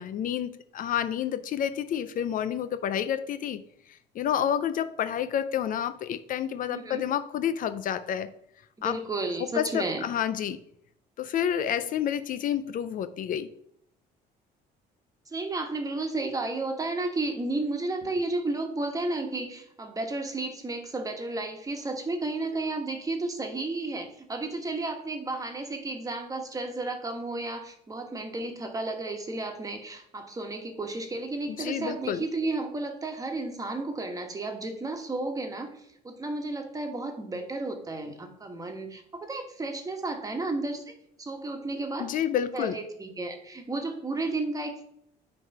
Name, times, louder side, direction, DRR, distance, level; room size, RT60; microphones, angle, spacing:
voice 1, 0.0-8.3 8.8-9.0 9.4-10.6 11.2-13.5 31.6-32.3 42.0-42.8, left 9 dB, 55° left, 12 dB, 0.5 m, -29 dB
voice 2, 6.7-7.0 8.8-10.1 15.3-40.9 41.2-42.1 42.5-44.8, right 2 dB, 20° right, 4 dB, 1.3 m, -33 dB
9.4 x 3.3 x 5.4 m, 0.72 s
cardioid pair, 110°, 17 cm